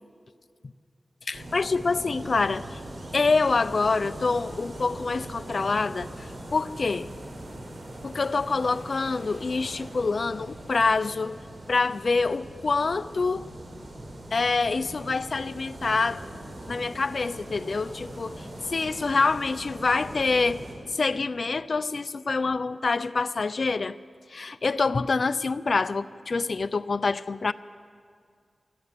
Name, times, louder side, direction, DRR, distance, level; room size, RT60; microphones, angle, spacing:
voice 1, 1.3-2.8 3.1-7.1 8.0-11.4 11.7-13.5 14.3-16.2 16.7-20.6 20.9-24.0 24.3-27.5, left 4 dB, 60° left, 12 dB, 0.4 m, -26 dB
sound 1, 1.3-20.7, right 1 dB, 60° right, 4.5 m, -41 dB
25.0 x 13.5 x 8.4 m, 2.2 s
wide cardioid pair, 100°, 0 cm